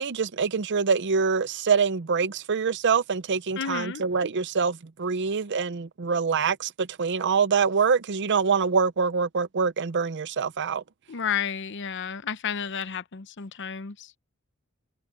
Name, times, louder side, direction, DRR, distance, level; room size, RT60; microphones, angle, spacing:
voice 1, 0.0-10.8, right 5 dB, 55° right, 0.6 m, -25 dB
voice 2, 3.6-4.0 11.1-14.1, left 7 dB, 60° left, 0.8 m, -31 dB
head